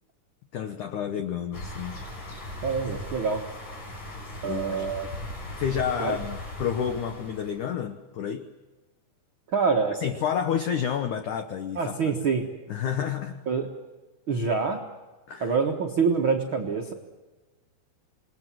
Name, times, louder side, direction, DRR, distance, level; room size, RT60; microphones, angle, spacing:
voice 1, 0.5-2.0 4.4-4.9 5.6-8.5 9.9-12.2 12.7-13.4 15.3-15.5, left 8 dB, 80° left, 8 dB, 1.7 m, -30 dB
sound 1, 1.5-7.7, left 1 dB, 40° left, 6.0 m, -38 dB
voice 2, 2.6-3.4 4.4-5.1 6.0-6.2 9.5-10.0 11.7-12.5 13.5-13.7 14.3-14.8 15.4-16.9, right 5 dB, 70° right, 2 dB, 1.2 m, -25 dB
27.5 x 21.0 x 7.6 m, 1.2 s
omnidirectional pair, 5.1 m